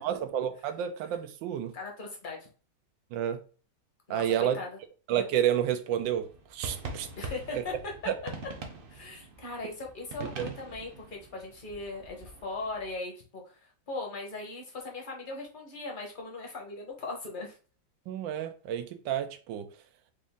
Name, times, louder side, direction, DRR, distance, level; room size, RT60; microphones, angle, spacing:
voice 1, 0.0-1.7 3.1-3.4 4.1-4.6 5.1-7.1 8.1-8.2 10.4-10.5 18.1-19.7, right 10 dB, 90° right, 1.3 m, -30 dB
voice 2, 1.7-2.5 4.1-4.7 7.2-7.7 8.9-17.6, left 3 dB, 35° left, 1.0 m, -39 dB
sound 1, 6.0-12.9, right 3 dB, 75° right, 0.5 m, -44 dB
5.0 x 2.6 x 3.5 m
omnidirectional pair, 2.0 m